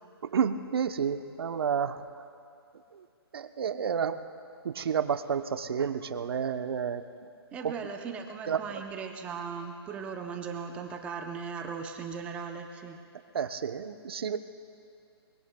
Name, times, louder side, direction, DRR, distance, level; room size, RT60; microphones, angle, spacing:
voice 1, 0.2-2.0 2.9-3.0 3.3-4.2 4.6-7.0 7.6-7.7 8.5-8.6 13.3-14.4, right 7 dB, 60° right, 9 dB, 0.8 m, -30 dB
voice 2, 7.5-13.0, right 5 dB, 10° right, 3 dB, 0.6 m, -38 dB
23.0 x 22.5 x 2.3 m, 2.6 s
hypercardioid pair, 160°, 14 cm